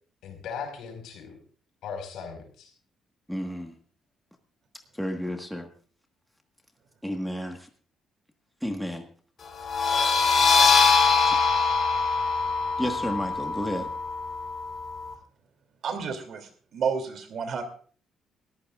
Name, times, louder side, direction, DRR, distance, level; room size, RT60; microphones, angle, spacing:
voice 1, 0.2-1.4 1.8-2.7, left 6 dB, 85° left, 4 dB, 5.0 m, -38 dB
voice 2, 3.3-3.8 5.0-5.7 7.0-7.7 8.6-9.1 11.2-11.3 12.8-13.9, equal, ahead, 3 dB, 1.5 m, -31 dB
sound 1, 9.6-15.1, left 4 dB, 40° left, 3.6 m, -23 dB
voice 3, 15.8-17.6, right 6 dB, 55° right, 7 dB, 2.8 m, -31 dB
21.5 x 14.5 x 2.4 m, 0.43 s
cardioid pair, 155°, 0 cm